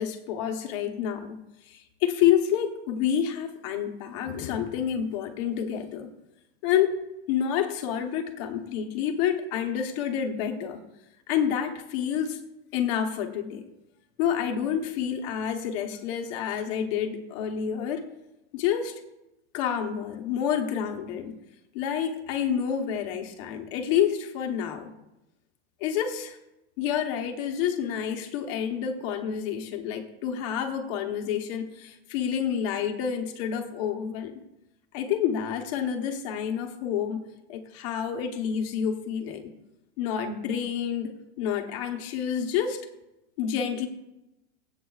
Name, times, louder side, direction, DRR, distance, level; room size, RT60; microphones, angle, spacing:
voice 1, 0.0-1.4 1.6-6.1 6.6-7.0 7.3-10.8 11.3-12.4 12.7-13.6 14.2-18.0 18.5-19.0 19.5-21.3 21.7-24.9 25.8-26.4 26.8-34.4 34.9-37.2 37.5-39.4 40.0-41.1 41.4-42.8 43.4-43.9, left 8 dB, 30° left, 4 dB, 0.8 m, -28 dB
23.0 x 8.1 x 2.3 m, 0.93 s
supercardioid pair, 180°, 33 cm